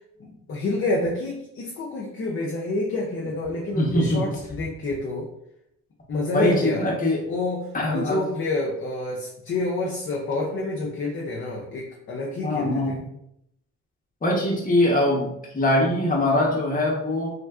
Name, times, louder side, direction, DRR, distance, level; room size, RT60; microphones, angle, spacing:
voice 1, 0.2-5.3 6.1-6.9 7.3-13.0, left 2 dB, 45° left, -2 dB, 0.6 m, -28 dB
voice 2, 3.7-4.2 6.3-7.2 7.7-8.2 12.4-13.0 14.2-17.3, left 1 dB, 30° left, -2 dB, 1.0 m, -22 dB
3.2 x 2.4 x 2.4 m, 0.77 s
cardioid pair, 90°, 30 cm